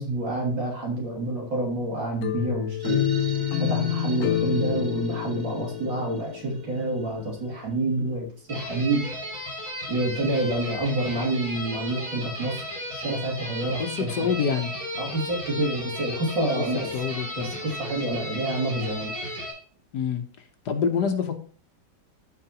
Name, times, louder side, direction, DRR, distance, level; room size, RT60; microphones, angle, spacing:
voice 1, 0.0-3.0 3.6-9.0 9.9-12.6 12.9-14.3 15.0-16.9 17.4-19.1, right 2 dB, 80° right, -2 dB, 3.4 m, -28 dB
sound 1, 2.2-7.1, left 11 dB, 85° left, 0.7 m, -28 dB
sound 2, 2.8-7.7, right 6 dB, 30° right, 0.8 m, -42 dB
sound 3, 8.5-19.5, equal, 50° right, 5.0 m, -35 dB
voice 2, 13.8-14.7 16.6-16.7 16.9-17.5 19.9-20.2 20.7-21.4, left 6 dB, 65° left, 7 dB, 1.4 m, -26 dB
14.0 x 4.6 x 2.9 m, 0.42 s
omnidirectional pair, 2.0 m